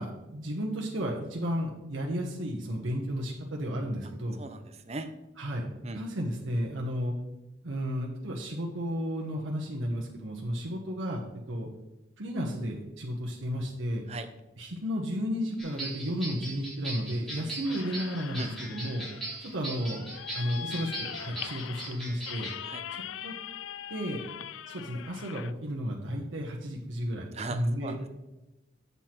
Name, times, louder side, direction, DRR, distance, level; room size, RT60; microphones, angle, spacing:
voice 1, 0.0-4.4 5.4-5.6 5.9-7.1 7.6-11.7 12.2-14.0 14.6-19.0 19.4-20.0 20.3-22.5 22.9-23.3 23.9-24.2 24.7-28.0, equal, 90° right, -1 dB, 1.1 m, -33 dB
voice 2, 4.4-5.1 5.8-6.0 14.1-14.3 17.4-17.5 18.4-18.5 22.6-22.8 27.3-28.1, right 3 dB, 35° right, 9 dB, 0.6 m, -38 dB
sound 1, 15.6-22.6, right 2 dB, ahead, 3.3 m, -40 dB
sound 2, 17.6-25.5, left 9 dB, 85° left, 0.4 m, -42 dB
7.8 x 6.8 x 4.4 m, 0.98 s
head